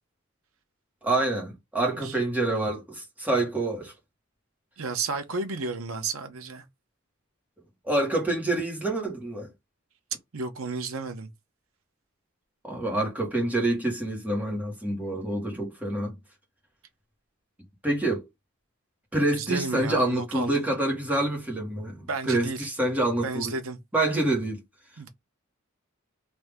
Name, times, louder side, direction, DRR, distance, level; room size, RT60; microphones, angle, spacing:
voice 1, 1.0-3.9 7.8-9.5 12.6-16.2 17.8-18.2 19.1-23.5 23.9-24.6, right 2 dB, 5° right, 1.4 m, -27 dB
voice 2, 4.8-6.6 10.3-11.3 19.3-20.6 22.1-22.7 23.2-23.8 25.0-25.1, right 4 dB, 75° right, 0.8 m, -32 dB
3.5 x 2.7 x 3.5 m
head